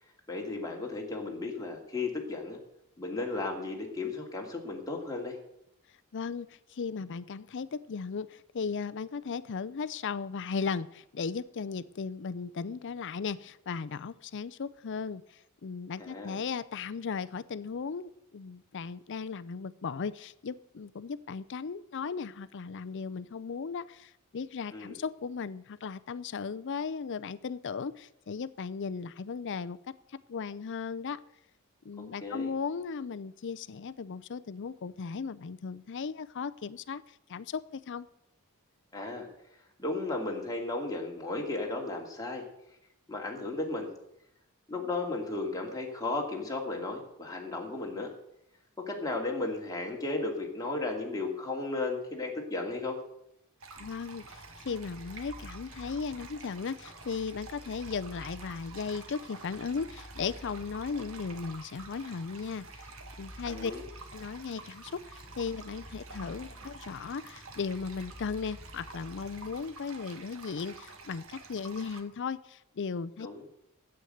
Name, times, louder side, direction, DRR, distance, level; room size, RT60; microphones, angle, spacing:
voice 1, 0.3-2.6 3.0-5.4 16.0-16.3 24.7-25.0 32.2-32.5 38.9-39.3 39.8-42.4 43.1-43.9 44.7-48.1 48.9-53.0 63.5-63.8 73.2-73.4, left 2 dB, 15° left, 0 dB, 2.4 m, -34 dB
voice 2, 6.1-15.2 15.6-29.8 30.3-31.2 31.8-37.0 37.3-38.1 53.8-54.4 54.6-62.9 63.2-63.7 64.1-73.3, left 5 dB, 55° left, 15 dB, 0.5 m, -36 dB
sound 1, 53.6-72.0, right 4 dB, 65° right, 1.8 m, -49 dB
sound 2, 53.7-69.7, equal, 85° right, 4.9 m, -51 dB
9.9 x 7.9 x 9.2 m, 0.81 s
head